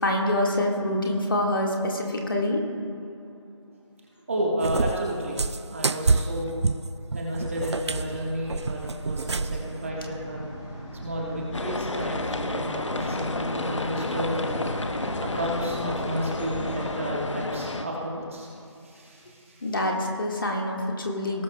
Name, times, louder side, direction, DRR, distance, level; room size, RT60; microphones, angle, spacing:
voice 1, 0.0-2.6 19.6-21.4, left 1 dB, 45° left, 0 dB, 1.7 m, -26 dB
voice 2, 4.3-6.5 7.1-10.4 11.0-14.6 15.2-18.5 18.8-19.6, equal, 25° right, -3 dB, 1.4 m, -32 dB
Cat, 4.6-9.7, right 4 dB, 60° right, 0.5 m, -27 dB
sound 1, 7.3-16.9, equal, ahead, 0.7 m, -38 dB
sound 2, 11.5-17.8, left 2 dB, 75° left, 0.9 m, -31 dB
18.5 x 12.5 x 2.2 m, 2.7 s
figure-of-eight pair, 170°, 16 cm